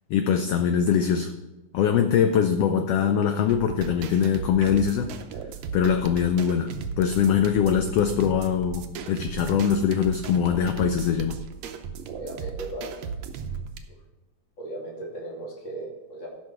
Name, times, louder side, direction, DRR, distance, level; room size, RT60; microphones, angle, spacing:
voice 1, 0.1-1.3 1.7-5.1 5.7-6.7 7.0-11.4, left 8 dB, 80° left, 7 dB, 1.4 m, -22 dB
sound 1, 3.5-13.8, right 6 dB, 70° right, 1.8 m, -36 dB
voice 2, 12.1-12.9 14.6-16.3, right 2 dB, 40° left, -3 dB, 3.3 m, -36 dB
13.5 x 5.8 x 6.0 m, 1.1 s
omnidirectional pair, 3.3 m